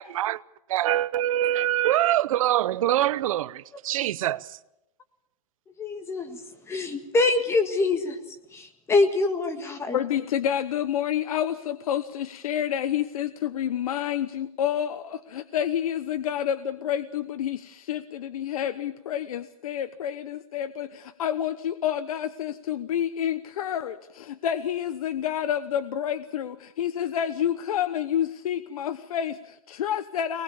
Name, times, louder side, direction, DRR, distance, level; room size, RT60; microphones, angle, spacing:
voice 1, 0.0-0.4 0.7-4.6, right 13 dB, 70° right, 0.8 m, -24 dB
voice 2, 5.8-6.4 6.7-8.2 8.5-10.0, left 3 dB, 15° left, 1.7 m, -24 dB
voice 3, 9.9-30.4, left 10 dB, 80° left, 1.0 m, -29 dB
23.0 x 20.0 x 7.2 m
supercardioid pair, 150°, 18 cm